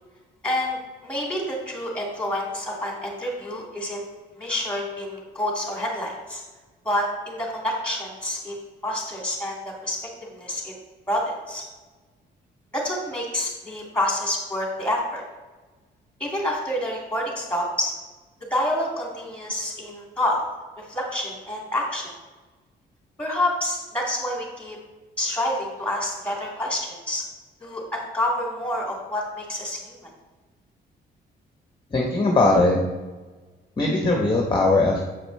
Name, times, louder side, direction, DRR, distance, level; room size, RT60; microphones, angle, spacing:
voice 1, 0.4-4.0 4.3-6.4 6.8-8.6 8.8-10.7 11.1-11.6 12.7-15.2 16.2-17.9 18.5-20.4 20.8-22.1 23.2-24.8 25.2-27.2 27.6-30.1, left 1 dB, 5° left, -1 dB, 2.1 m, -28 dB
voice 2, 31.9-32.8 33.8-35.0, left 2 dB, 25° left, 0 dB, 0.9 m, -19 dB
7.4 x 5.1 x 3.2 m, 1.2 s
cardioid pair, 90°, 20 cm